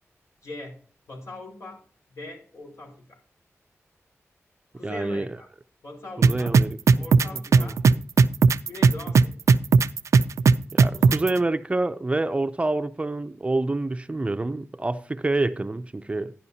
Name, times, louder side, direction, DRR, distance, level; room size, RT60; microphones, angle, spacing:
voice 1, 0.4-0.8 1.1-1.8 2.1-2.9 4.7-5.5 5.8-6.6 7.0-7.8 8.7-9.3 10.9-11.5, left 2 dB, 80° left, 5.3 m, -40 dB
voice 2, 4.8-5.3 6.2-8.0 10.7-16.3, right 2 dB, 25° right, 0.5 m, -27 dB
sound 1, 6.2-11.3, right 5 dB, 80° right, 0.4 m, -16 dB
12.0 x 10.5 x 2.8 m
wide cardioid pair, 110°, 5 cm